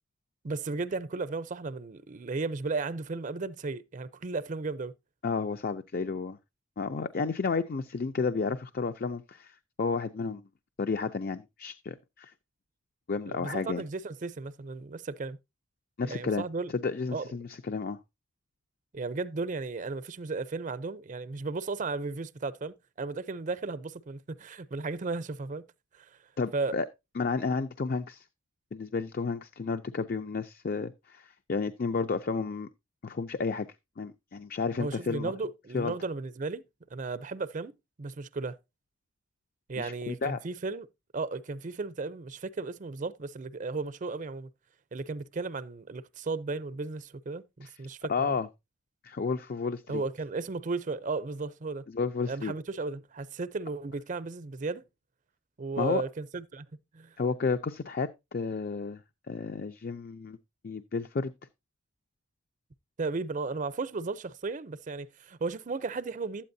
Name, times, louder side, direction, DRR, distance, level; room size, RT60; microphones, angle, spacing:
voice 1, 0.4-4.9 13.3-15.4 16.0-16.7 17.1-17.3 18.9-25.6 25.9-26.1 26.5-26.7 34.8-36.6 36.9-38.6 39.7-40.9 41.1-44.5 44.9-48.4 49.9-51.8 52.3-54.8 55.6-56.6 56.9-57.1 63.0-66.4, right 3 dB, 40° right, 0.5 m, -35 dB
voice 2, 5.2-6.4 6.8-10.4 10.8-12.3 13.1-13.8 16.0-16.4 16.7-18.0 26.4-26.9 27.2-28.2 28.7-32.7 33.0-33.7 34.0-35.3 35.7-35.9 39.8-40.4 47.6-47.7 48.1-48.5 49.0-50.0 51.9-52.5 55.8-56.0 57.2-59.0 59.3-60.4 60.6-61.3, left 4 dB, 50° left, 0.5 m, -32 dB
12.5 x 8.6 x 2.7 m
head